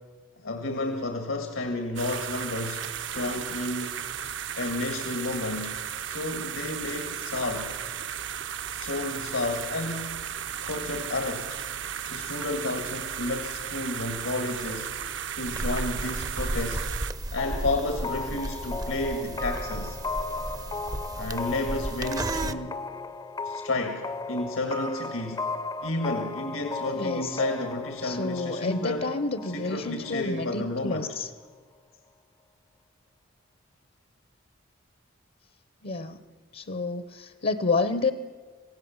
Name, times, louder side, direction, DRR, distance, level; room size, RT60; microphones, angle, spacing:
voice 1, 0.4-4.0 4.6-5.8 6.1-7.7 8.7-10.3 10.6-11.6 12.0-14.9 15.3-16.9 17.3-20.0 21.2-22.8 23.4-25.4 25.8-29.1 29.5-31.1, left 2 dB, 85° left, 5 dB, 1.7 m, -31 dB
sound 1, 2.0-17.1, right 9 dB, 60° right, 0.8 m, -35 dB
sound 2, 15.5-22.5, right 1 dB, 20° right, 0.6 m, -34 dB
sound 3, 17.4-30.9, left 3 dB, 20° left, 0.6 m, -36 dB
voice 2, 26.9-27.4 28.0-31.3 35.8-36.2 36.5-38.1, left 3 dB, 50° left, 12 dB, 0.8 m, -29 dB
26.5 x 16.0 x 7.1 m, 1.4 s
head